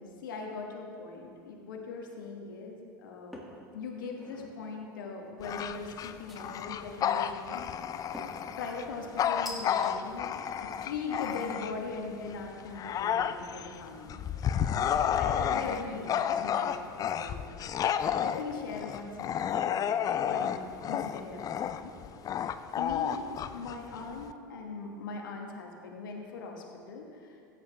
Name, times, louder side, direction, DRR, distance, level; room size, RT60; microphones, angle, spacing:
voice 1, 0.0-3.4 3.7-7.9 8.6-10.4 10.8-14.2 14.6-17.7 18.2-21.9 22.8-27.4, left 4 dB, 75° left, 1 dB, 1.3 m, -40 dB
sound 1, 3.3-3.6 4.1-4.6 6.3-6.8 8.1-8.5 9.5-9.9, equal, ahead, 2.1 m, -44 dB
Bark / Growling, 5.4-12.0 12.4-24.3, left 9 dB, 35° left, 0.4 m, -31 dB
15.5 x 8.2 x 3.3 m, 2.5 s
hypercardioid pair, 80°, 11 cm